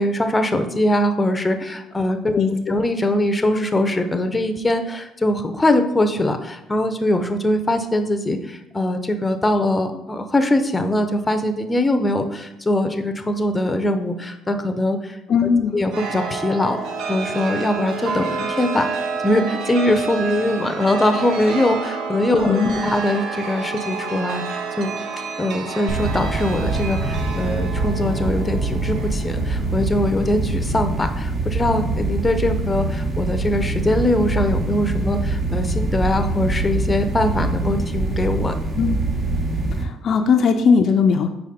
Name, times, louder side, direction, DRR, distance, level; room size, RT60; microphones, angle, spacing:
voice 1, 0.0-15.2 15.7-16.8 17.1-18.9 19.2-24.9 25.4-38.5, left 1 dB, 15° left, 7 dB, 0.6 m, -22 dB
voice 2, 2.4-2.8 15.3-15.8 22.4-22.8 38.8-39.0 39.8-41.3, left 5 dB, 55° left, 6 dB, 0.4 m, -18 dB
Chime, 15.9-30.1, right 4 dB, 85° right, 0.7 m, -29 dB
sound 1, 25.9-39.8, right 2 dB, 40° right, 1.0 m, -24 dB
5.0 x 4.6 x 4.2 m, 0.88 s
cardioid pair, 90°, 0 cm